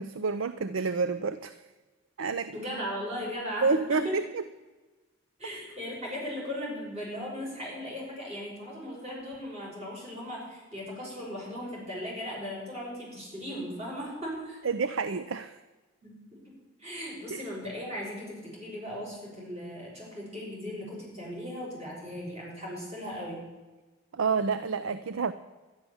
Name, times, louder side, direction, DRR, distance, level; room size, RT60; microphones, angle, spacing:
voice 1, 0.0-1.6 2.2-2.6 3.6-4.4 5.4-5.6 14.6-15.6 17.3-17.4 24.1-25.3, right 4 dB, 90° right, 12 dB, 0.6 m, -29 dB
voice 2, 2.5-4.2 5.4-14.6 16.0-16.1 16.8-23.4, equal, 35° right, -4 dB, 6.0 m, -37 dB
12.0 x 11.0 x 7.1 m, 1.2 s
head